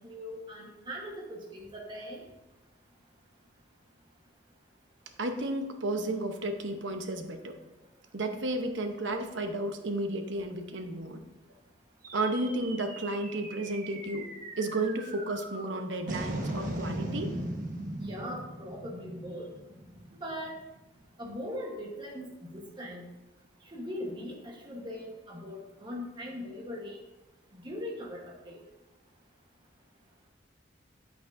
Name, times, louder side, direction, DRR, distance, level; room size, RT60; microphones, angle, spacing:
voice 1, 0.0-2.2 18.0-19.5 20.1-20.6 21.2-23.1 23.6-27.0 27.5-28.6, equal, 25° right, -2 dB, 1.2 m, -40 dB
voice 2, 5.2-7.5 8.1-11.2 12.1-17.3, right 2 dB, 75° right, 6 dB, 0.9 m, -33 dB
sound 1, 12.0-20.6, right 1 dB, 45° right, 1.3 m, -39 dB
9.0 x 8.3 x 2.6 m, 1.0 s
head